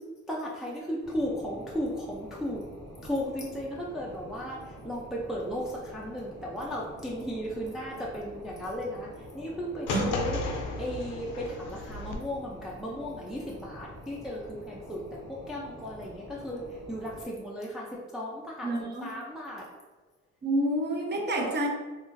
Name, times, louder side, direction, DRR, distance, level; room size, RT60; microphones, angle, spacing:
voice 1, 0.3-2.6 3.0-17.9 18.1-18.7 19.0-19.7, equal, ahead, -4 dB, 0.4 m, -35 dB
sound 1, 1.0-17.2, equal, 90° right, 1.4 m, -47 dB
sound 2, 9.9-12.2, left 3 dB, 85° left, 0.5 m, -33 dB
voice 2, 18.6-19.1 20.4-21.7, right 1 dB, 35° right, 1 dB, 0.7 m, -28 dB
2.9 x 2.4 x 2.5 m, 1.3 s
cardioid pair, 90°, 30 cm